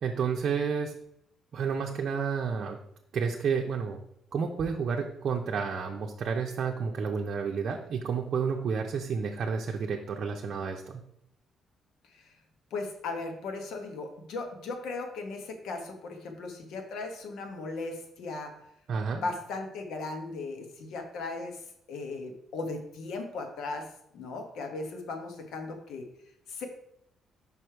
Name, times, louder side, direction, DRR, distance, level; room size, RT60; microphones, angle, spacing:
voice 1, 0.0-0.9 1.5-2.8 3.1-4.0 4.3-11.0 18.9-19.3, right 6 dB, 60° right, 2 dB, 0.6 m, -30 dB
voice 2, 12.7-18.5 19.2-21.6 21.9-23.9 24.1-26.1 26.5-26.7, left 3 dB, 80° left, 4 dB, 1.2 m, -37 dB
5.4 x 4.8 x 4.5 m, 0.75 s
cardioid pair, 90°, 0 cm